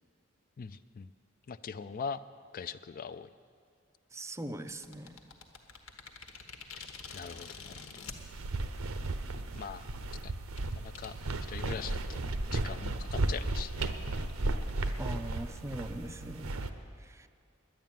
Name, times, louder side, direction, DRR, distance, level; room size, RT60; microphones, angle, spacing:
voice 1, 0.6-1.1 1.5-2.2 2.5-3.3 7.1-7.8 9.5-9.9 10.2-10.3 10.7-11.1 11.5-12.2 12.5-13.9, left 6 dB, 45° left, 13 dB, 0.3 m, -41 dB
voice 2, 4.1-5.3 15.0-16.7 17.0-17.3, right 1 dB, 15° right, 9 dB, 0.5 m, -41 dB
sound 1, 4.7-8.2 9.0-9.1 9.6-9.8 10.6-10.7 10.9-11.1 11.7-12.2 12.5-12.6 12.9-13.0 13.5-13.6 13.9-14.0 14.2-14.3 14.6-16.3, left 5 dB, 85° left, 1.3 m, -48 dB
sound 2, 8.2-16.7, right 2 dB, 80° right, 0.8 m, -35 dB
11.0 x 10.0 x 9.1 m, 2.4 s
head